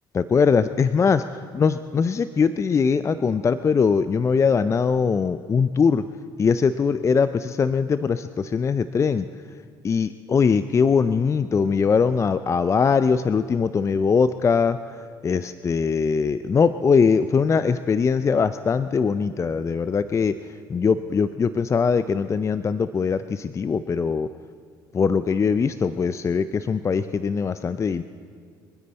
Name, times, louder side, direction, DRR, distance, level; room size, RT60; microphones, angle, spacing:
voice 1, 0.1-1.2 1.5-6.0 6.4-9.2 9.8-14.8 15.2-20.3 20.7-24.3 24.9-28.0, left 5 dB, 30° left, 13 dB, 0.5 m, -21 dB
28.0 x 9.5 x 4.2 m, 2.1 s
hypercardioid pair, 70°, 11 cm